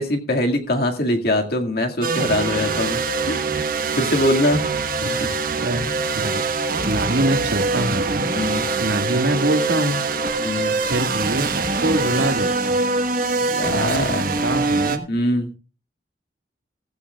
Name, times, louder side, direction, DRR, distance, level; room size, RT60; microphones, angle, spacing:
voice 1, 0.0-3.0 3.3-3.7 3.9-4.8 5.1-5.3 8.3-8.6 10.4-10.8 13.5-14.3 15.1-15.5, left 1 dB, 55° left, 3 dB, 2.0 m, -23 dB
sound 1, 2.0-15.0, right 3 dB, 50° right, 1.4 m, -23 dB
voice 2, 5.6-6.4 6.8-8.3 8.8-10.0 10.8-12.8 13.7-15.1, right 1 dB, 85° right, 6 dB, 1.8 m, -24 dB
15.5 x 14.5 x 2.4 m, 0.33 s
head